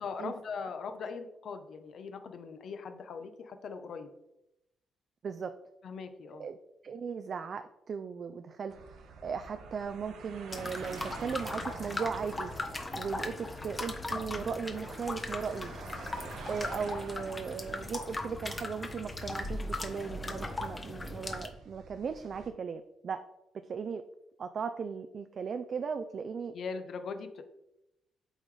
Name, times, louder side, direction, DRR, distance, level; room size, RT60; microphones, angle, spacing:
voice 1, 0.0-4.1 5.8-6.5 26.5-27.4, left 5 dB, 60° left, 8 dB, 0.7 m, -40 dB
voice 2, 5.2-5.5 6.4-6.6 6.8-9.0 9.2-12.5 12.9-15.7 16.5-23.2 23.5-24.0 24.4-26.5, right 6 dB, 50° right, 9 dB, 0.3 m, -37 dB
sound 1, 8.7-22.5, right 4 dB, 80° right, 0.9 m, -49 dB
sound 2, 10.5-21.5, left 2 dB, 20° left, 0.8 m, -38 dB
7.9 x 3.8 x 3.2 m, 0.87 s
cardioid pair, 90°, 0 cm